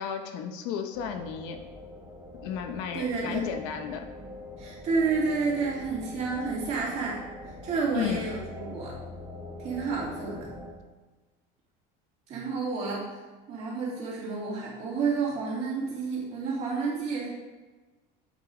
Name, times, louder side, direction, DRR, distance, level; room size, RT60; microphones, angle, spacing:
voice 1, 0.0-1.6 2.4-4.1 7.9-8.3, left 8 dB, 70° left, 6 dB, 0.8 m, -33 dB
sound 1, 0.9-10.7, left 1 dB, 5° right, 1.0 m, -43 dB
voice 2, 2.9-3.5 4.6-7.2 7.6-9.0 9.6-10.5 12.3-13.1 13.5-17.3, right 4 dB, 35° right, -5 dB, 2.5 m, -30 dB
8.2 x 5.4 x 3.9 m, 1.2 s
cardioid pair, 175°, 18 cm